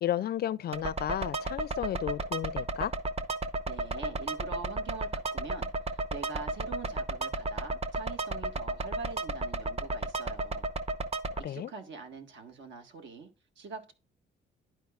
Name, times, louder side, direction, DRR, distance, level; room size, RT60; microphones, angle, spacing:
voice 1, 0.0-2.9 11.4-11.7, left 11 dB, 55° left, 0.4 m, -33 dB
sound 1, 0.7-11.4, right 2 dB, 30° right, 0.8 m, -34 dB
voice 2, 3.7-10.7 11.4-13.3 13.6-13.9, right 4 dB, 70° right, 1.6 m, -44 dB
11.5 x 4.6 x 2.4 m
cardioid pair, 90°, 20 cm